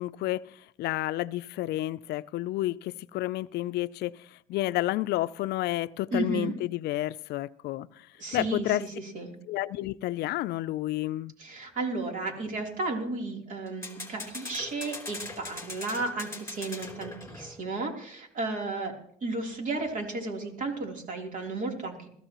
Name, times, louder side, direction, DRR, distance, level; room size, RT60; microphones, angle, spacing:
voice 1, 0.0-8.1 8.3-8.8 9.5-11.3, left 16 dB, 75° left, 16 dB, 0.4 m, -30 dB
voice 2, 6.1-6.5 8.2-9.3 11.4-19.0 19.2-22.1, right 3 dB, 50° right, 2 dB, 3.4 m, -33 dB
sound 1, 8.3-8.8 13.7-17.7, left 3 dB, 15° left, 3.4 m, -41 dB
21.5 x 14.0 x 3.0 m, 0.66 s
cardioid pair, 110°, 17 cm